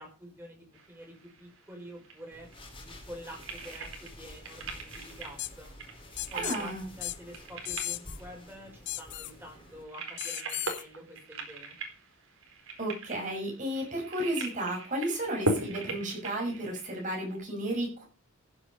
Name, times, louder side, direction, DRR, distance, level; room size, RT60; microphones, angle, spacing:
voice 1, 0.0-2.5 2.8-5.7 6.3-11.8, equal, 10° right, 0 dB, 5.2 m, -48 dB
sound 1, 0.7-17.4, right 2 dB, 65° right, 4.3 m, -39 dB
sound 2, 2.3-9.8, left 1 dB, 25° left, 3.7 m, -50 dB
sound 3, 5.4-5.5 6.2-6.6 7.0-7.2 7.6-8.2 8.9-9.3 10.2-10.8, left 15 dB, 50° left, 0.6 m, -35 dB
voice 2, 6.3-6.9 12.8-18.0, right 1 dB, 35° right, 0 dB, 6.4 m, -33 dB
15.0 x 8.1 x 5.2 m, 0.34 s
head